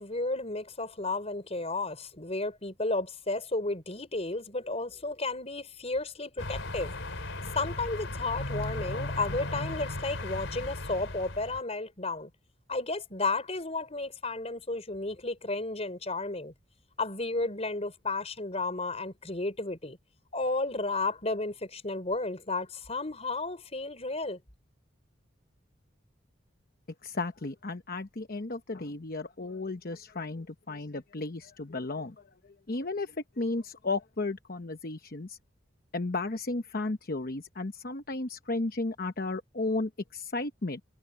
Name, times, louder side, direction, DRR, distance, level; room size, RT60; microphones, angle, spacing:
voice 1, 0.0-6.9 7.5-12.3 12.7-16.5 17.0-20.0 20.3-24.4, left 2 dB, 35° left, 4.5 m, -33 dB
sound 1, 6.4-11.6, left 2 dB, 80° left, 3.6 m, -36 dB
voice 2, 27.0-32.1 32.7-35.4 35.9-40.8, left 2 dB, 50° left, 1.0 m, -34 dB
head